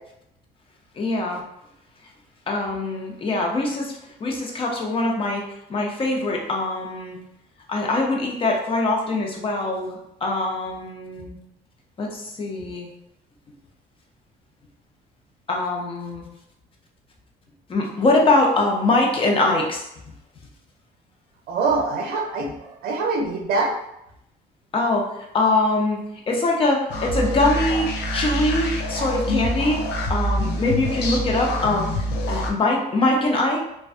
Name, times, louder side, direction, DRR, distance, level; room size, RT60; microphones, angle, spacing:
voice 1, 1.0-1.4 2.5-5.4 5.7-7.2 7.7-11.4 12.0-12.9 15.5-16.3 17.7-19.9 24.7-25.1 25.3-26.0 26.3-29.8 30.1-33.7, left 2 dB, 30° left, 0 dB, 0.6 m, -23 dB
voice 2, 21.5-23.7, right 3 dB, 65° right, 2 dB, 0.5 m, -24 dB
sound 1, 26.9-32.5, left 1 dB, 80° left, 0.5 m, -25 dB
2.5 x 2.2 x 2.4 m, 0.82 s
cardioid pair, 110°, 17 cm